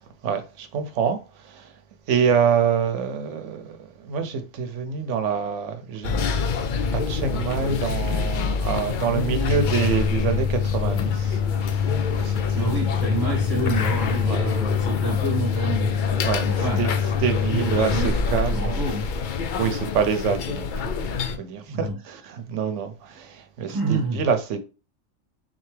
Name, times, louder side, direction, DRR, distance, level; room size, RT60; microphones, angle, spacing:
voice 1, 0.2-1.2 1.4-1.7 2.1-6.3 6.9-11.9 12.1-12.8 14.3-14.5 16.2-16.5 16.8-18.8 19.6-24.6, right 7 dB, 70° right, 1.0 m, -26 dB
sound 1, 6.0-21.4, left 6 dB, 70° left, 0.4 m, -25 dB
voice 2, 12.5-15.9 16.4-16.8 17.5-19.1 21.7-22.0 23.7-24.3, right 2 dB, 15° right, 1.4 m, -28 dB
3.8 x 3.3 x 3.3 m
omnidirectional pair, 1.4 m